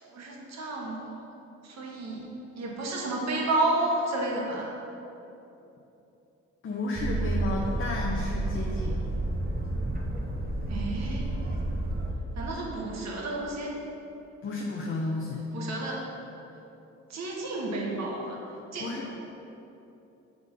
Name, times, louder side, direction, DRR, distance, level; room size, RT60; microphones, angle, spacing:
voice 1, 0.1-1.0 1.8-2.3 2.5-4.7 10.7-11.2 12.4-13.7 15.5-16.0 17.1-18.4 18.7-18.8, right 2 dB, 60° right, -2 dB, 1.3 m, -31 dB
voice 2, 6.6-9.0 14.4-15.4 18.8-19.1, left 3 dB, 40° left, -2 dB, 0.7 m, -32 dB
Boat Water vehicle, 6.9-12.1, right 2 dB, 30° right, 0.9 m, -30 dB
6.0 x 3.8 x 5.2 m, 3.0 s
cardioid pair, 90°, 30 cm